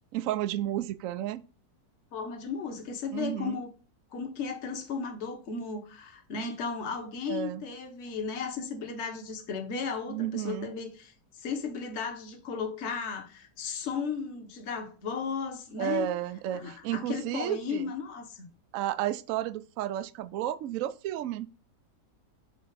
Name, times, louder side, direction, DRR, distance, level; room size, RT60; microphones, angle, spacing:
voice 1, 0.1-1.4 3.1-3.6 7.3-7.6 10.1-10.7 15.8-17.9 18.7-21.5, right 12 dB, 65° right, 0.8 m, -32 dB
voice 2, 2.1-3.7 4.1-16.1 16.5-18.5, left 5 dB, 45° left, 1.4 m, -35 dB
6.6 x 4.3 x 4.0 m
omnidirectional pair, 1.8 m